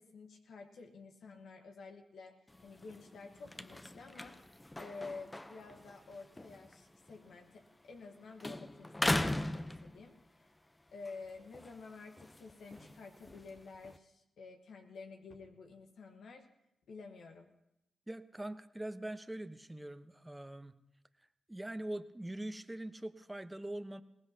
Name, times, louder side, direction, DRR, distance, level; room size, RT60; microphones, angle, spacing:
voice 1, 0.0-2.4 2.6-4.4 4.8-10.2 10.9-16.5 16.9-17.5, left 4 dB, 75° left, 3 dB, 1.2 m, -50 dB
sound 1, 2.5-8.1 8.4-10.4 10.9-14.0, left 1 dB, 15° left, 0.6 m, -40 dB
voice 2, 18.1-20.8 21.5-24.0, right 1 dB, 15° right, 10 dB, 0.9 m, -43 dB
21.5 x 18.5 x 2.8 m, 0.83 s
cardioid pair, 60°, 0 cm